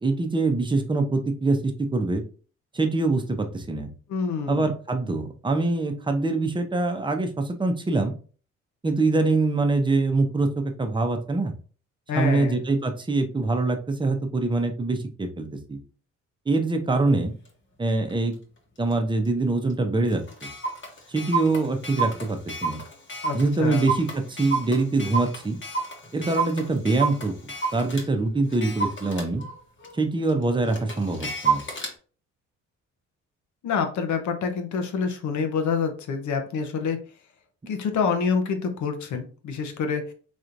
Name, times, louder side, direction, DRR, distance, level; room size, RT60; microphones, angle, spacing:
voice 1, 0.0-2.2 2.7-3.9 4.5-8.1 8.8-11.5 12.2-15.8 16.5-17.3 17.8-18.3 18.8-20.2 21.1-22.8 23.3-25.6 26.1-29.4 29.9-31.6, right 3 dB, 15° right, 5 dB, 0.7 m, -24 dB
voice 2, 4.1-4.7 12.1-12.6 23.2-23.9 33.6-37.0 37.7-40.0, left 5 dB, 70° left, 6 dB, 0.9 m, -27 dB
Clock, 17.4-17.5 18.1-18.3 18.9-19.0 19.2-19.3 19.7-19.8 20.1-28.1 28.5-31.9, right 5 dB, 40° left, 1.2 m, -30 dB
4.1 x 3.1 x 2.5 m, 0.39 s
cardioid pair, 90°, 30 cm